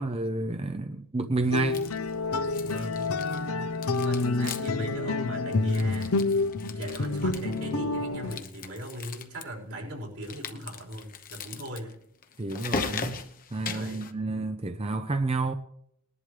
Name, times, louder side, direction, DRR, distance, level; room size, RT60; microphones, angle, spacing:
voice 1, 0.0-1.9 12.4-13.2 13.5-15.5, right 3 dB, 25° right, 0.6 m, -30 dB
sound 1, 1.5-8.4, left 3 dB, 70° left, 0.8 m, -28 dB
sound 2, 1.5-2.1 2.4-3.5 3.7-4.9 5.1-5.2 5.5-7.7 8.2-9.4 10.2-14.1, left 5 dB, 40° left, 1.0 m, -38 dB
voice 2, 2.6-3.1 3.8-6.1 6.7-12.0 13.7-14.0, equal, 80° right, 5.1 m, -39 dB
20.5 x 11.0 x 3.3 m
head